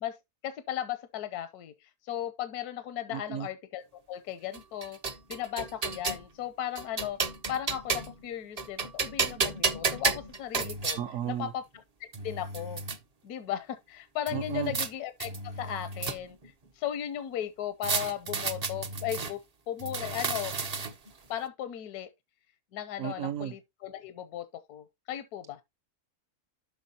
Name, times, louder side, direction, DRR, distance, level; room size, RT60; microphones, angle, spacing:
voice 1, 0.4-5.0 5.3-7.2 7.5-11.0 11.3-11.8 12.2-12.8 13.2-16.4 16.7-19.4 19.7-20.5 21.3-22.1 22.7-25.6, left 11 dB, 85° left, 1.2 m, -36 dB
voice 2, 3.1-3.5 11.0-11.5 14.3-14.7 23.0-23.5, right 10 dB, 65° right, 1.0 m, -34 dB
sound 1, 4.5-6.2 6.8-8.2 8.6-11.0 11.8-11.9 12.1-13.0 14.3-14.9 15.2-16.5 17.8-19.3 19.8-21.1, right 4 dB, 40° right, 0.5 m, -32 dB
11.5 x 5.9 x 2.7 m
omnidirectional pair, 1.6 m